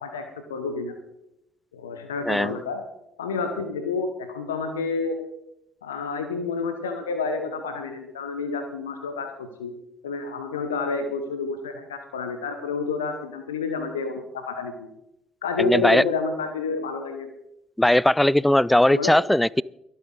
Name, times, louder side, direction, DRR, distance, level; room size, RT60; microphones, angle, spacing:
voice 1, 0.0-1.0 1.7-2.8 3.2-5.2 5.8-9.7 10.0-14.9 15.4-17.3 18.9-19.2, left 4 dB, 75° left, 8 dB, 1.0 m, -29 dB
voice 2, 2.3-2.6 15.6-16.0 17.8-19.6, left 1 dB, 5° left, 24 dB, 0.3 m, -19 dB
23.5 x 8.6 x 3.9 m, 0.85 s
figure-of-eight pair, 50°, 0 cm